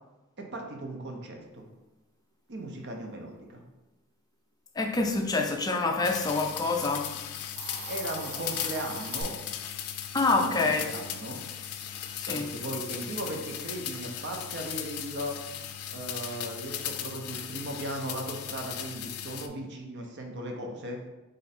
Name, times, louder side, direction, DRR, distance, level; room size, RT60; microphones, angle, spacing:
voice 1, 0.4-1.7 2.5-3.6 7.9-9.4 10.3-11.4 12.3-15.4 15.9-21.0, right 1 dB, 50° right, 0.7 m, -37 dB
voice 2, 4.8-7.1 10.1-10.8 12.2-12.5, left 3 dB, 15° left, 0.3 m, -26 dB
sound 1, 6.0-19.5, left 10 dB, 90° left, 0.4 m, -37 dB
Hiss, 7.4-9.2, right 4 dB, 85° right, 0.8 m, -42 dB
4.3 x 2.6 x 4.1 m
head